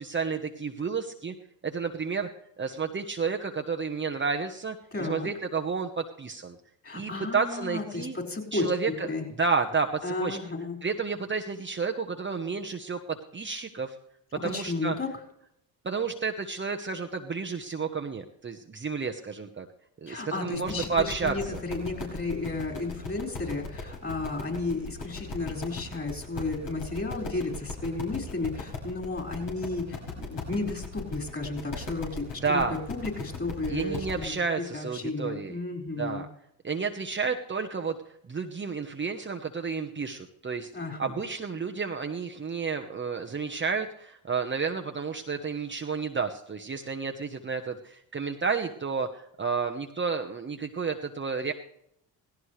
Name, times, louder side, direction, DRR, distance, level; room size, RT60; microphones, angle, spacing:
voice 1, 0.0-1.3 1.6-2.3 2.6-6.6 6.9-8.2 8.5-9.1 9.4-10.4 10.8-13.0 13.3-13.9 14.4-14.9 15.8-19.7 20.0-21.6 32.4-32.8 33.7-35.6 36.0-36.3 36.6-38.0 38.3-40.7 41.0-51.5, right 5 dB, 25° right, 4 dB, 1.1 m, -31 dB
voice 2, 4.9-5.3 6.8-8.7 9.0-9.3 10.0-10.8 14.4-15.1 20.1-32.6 32.9-36.3 40.7-41.2, left 3 dB, 30° left, 2 dB, 5.3 m, -33 dB
sound 1, 20.5-34.2, left 3 dB, 65° left, 5.5 m, -38 dB
17.0 x 16.5 x 3.3 m, 0.73 s
supercardioid pair, 70°, 46 cm